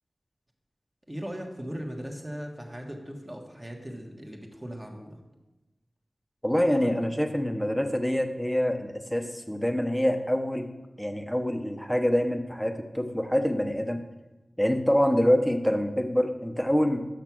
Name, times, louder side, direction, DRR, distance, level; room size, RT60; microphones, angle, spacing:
voice 1, 1.1-5.2, equal, 20° right, 1 dB, 1.6 m, -38 dB
voice 2, 6.4-10.7 11.0-14.0 14.6-17.0, equal, ahead, 6 dB, 0.9 m, -25 dB
6.6 x 5.9 x 6.1 m, 1.1 s
cardioid pair, 40°, 0 cm